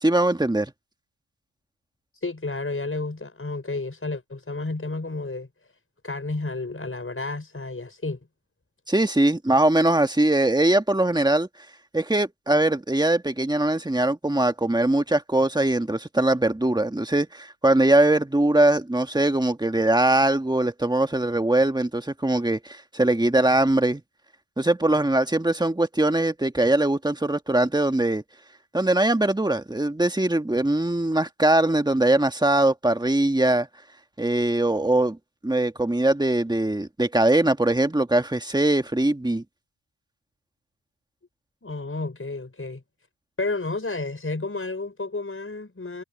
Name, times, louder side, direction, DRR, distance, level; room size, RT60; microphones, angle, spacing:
voice 1, 0.0-0.7 8.9-11.5 11.9-24.0 24.6-28.2 28.7-33.7 34.2-35.2 35.4-39.4, right 1 dB, 10° right, 1.6 m, -21 dB
voice 2, 2.2-5.5 6.0-8.2 41.6-42.8 43.4-46.0, left 3 dB, 25° left, 5.8 m, -31 dB
cardioid pair, 80°, 48 cm